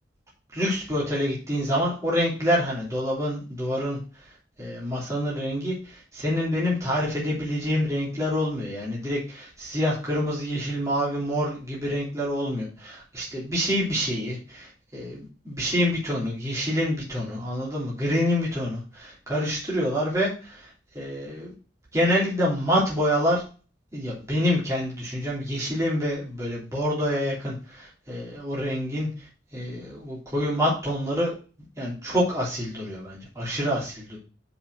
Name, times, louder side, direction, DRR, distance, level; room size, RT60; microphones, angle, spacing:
voice 1, 0.5-4.3 4.6-21.5 21.9-23.4 23.9-29.3 29.5-31.3 31.8-34.2, equal, 15° right, -6 dB, 3.2 m, -27 dB
5.8 x 5.4 x 6.2 m, 0.36 s
head